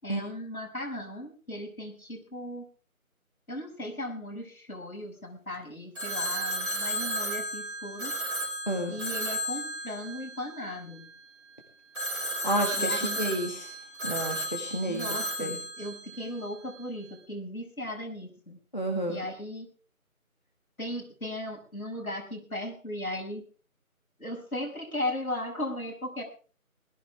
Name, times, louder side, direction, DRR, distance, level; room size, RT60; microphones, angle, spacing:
voice 1, 0.0-2.7 3.5-8.1 8.9-11.1 12.7-13.2 14.9-18.6 19.1-19.7 20.8-23.4 24.2-26.2, left 1 dB, 75° left, 0 dB, 6.3 m, -37 dB
Telephone, 5.9-11.2 11.9-16.8, right 1 dB, 60° right, 5.6 m, -34 dB
voice 2, 12.2-13.8 14.0-15.6 18.7-19.2, right 1 dB, 30° left, 1 dB, 1.8 m, -31 dB
20.5 x 13.5 x 3.5 m, 0.39 s
figure-of-eight pair, 180°, 43 cm